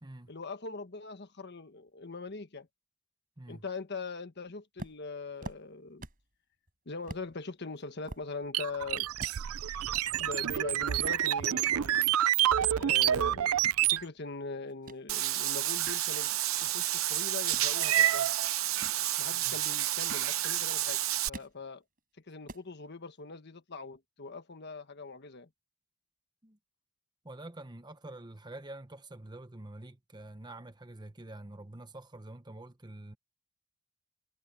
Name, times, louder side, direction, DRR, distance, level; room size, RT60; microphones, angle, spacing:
voice 1, 0.3-2.7 3.5-6.1 6.9-9.1 10.2-12.1 12.7-13.5 13.9-18.3 19.2-21.0 21.3-21.8 22.3-25.5, left 3 dB, 50° left, 1.3 m, -41 dB
sound 1, 4.8-6.3 6.7-6.8 7.1-7.3 7.8-9.8 10.1-10.2 11.0-12.1 12.4-12.8 13.3-15.0 15.4-16.7 17.3-17.7 18.6-19.1 19.7-20.7 21.0-21.6 22.0-22.1 22.3-22.7, right 1 dB, 40° right, 4.9 m, -47 dB
sound 2, 8.5-14.0, right 11 dB, 85° right, 0.5 m, -28 dB
Meow / Water / Bathtub (filling or washing), 15.1-21.3, right 13 dB, 70° right, 0.9 m, -29 dB
voice 2, 27.2-33.1, right 1 dB, 20° right, 1.1 m, -47 dB
head